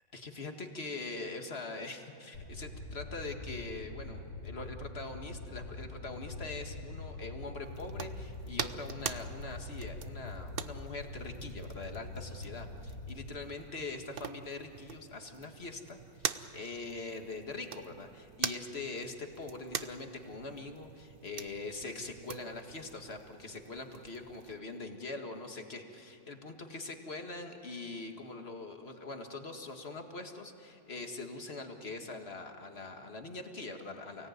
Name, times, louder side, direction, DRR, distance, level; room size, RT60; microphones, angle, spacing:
voice 1, 0.1-34.3, left 3 dB, 35° left, 4 dB, 2.0 m, -43 dB
Fire, 2.3-13.2, left 2 dB, 60° left, 3.9 m, -44 dB
sound 1, 7.6-24.6, right 7 dB, 60° right, 0.5 m, -44 dB
29.5 x 18.0 x 9.4 m, 2.7 s
omnidirectional pair, 2.0 m